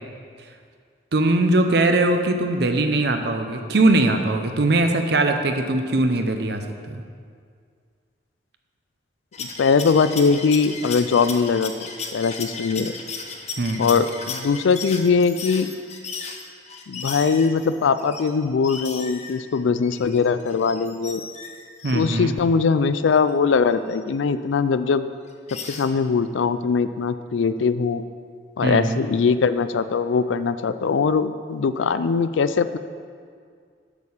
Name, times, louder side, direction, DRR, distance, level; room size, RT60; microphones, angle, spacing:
voice 1, 1.1-7.0 13.6-13.9 21.8-22.3 28.6-29.0, right 2 dB, 60° right, 6 dB, 0.6 m, -21 dB
sound 1, 9.3-18.3 18.6-22.0 23.1-23.2 23.9-24.0 25.3-25.9, left 5 dB, 35° left, 0.7 m, -35 dB
voice 2, 9.4-12.9 13.8-15.7 16.9-21.2 21.9-25.0 25.7-28.0 28.6-32.8, left 5 dB, 90° left, 13 dB, 0.4 m, -21 dB
8.3 x 6.6 x 5.6 m, 2.1 s
head